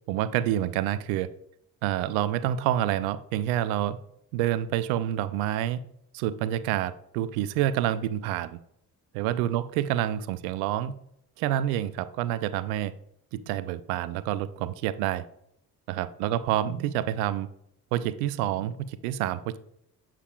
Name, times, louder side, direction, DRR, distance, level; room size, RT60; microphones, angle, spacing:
voice 1, 0.1-1.3 1.8-4.0 4.3-5.8 6.1-8.6 9.1-10.9 11.4-12.9 13.3-15.2 15.9-17.5 17.9-19.6, right 12 dB, 60° right, 15 dB, 0.6 m, -28 dB
8.1 x 7.3 x 2.3 m, 0.73 s
figure-of-eight pair, 45°, 50 cm